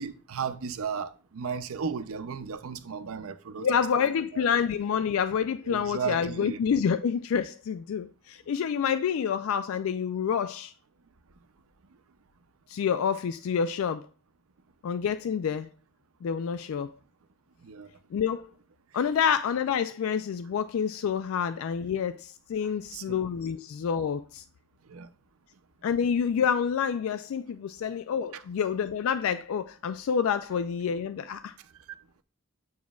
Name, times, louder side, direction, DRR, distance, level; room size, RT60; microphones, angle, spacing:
voice 1, 0.0-4.0 4.3-4.5 5.6-6.6 17.6-17.9 22.9-23.2 24.9-25.1 28.3-28.4, right 6 dB, 75° right, 0.5 m, -35 dB
voice 2, 3.6-10.7 12.7-14.1 14.8-15.7 16.2-16.9 18.1-18.5 18.9-24.4 25.8-31.5, left 7 dB, 70° left, 0.3 m, -28 dB
7.3 x 6.1 x 2.3 m
head